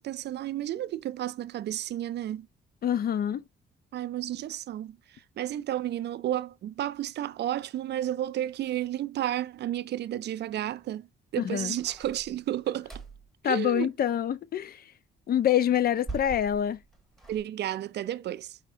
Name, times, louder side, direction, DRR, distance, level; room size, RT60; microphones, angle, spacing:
voice 1, 0.0-2.5 3.9-11.1 11.3-12.9 13.4-13.9 17.3-18.6, right 12 dB, 60° right, 0.4 m, -32 dB
voice 2, 2.8-3.4 11.4-11.8 13.4-14.8 15.3-16.8, left 10 dB, 50° left, 0.4 m, -26 dB
sound 1, 11.8-13.3 15.7-17.4, right 3 dB, ahead, 1.2 m, -43 dB
4.9 x 3.5 x 2.7 m
cardioid pair, 90°, 20 cm